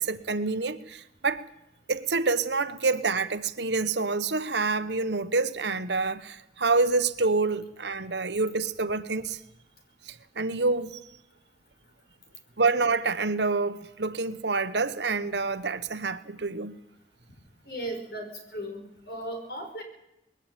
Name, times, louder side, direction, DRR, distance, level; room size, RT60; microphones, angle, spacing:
voice 1, 0.0-1.5 1.9-9.4 10.1-11.0 12.6-16.8, right 3 dB, 75° right, 1.2 m, -27 dB
voice 2, 17.7-19.8, right 1 dB, 60° left, 5.9 m, -36 dB
21.0 x 16.5 x 9.2 m
head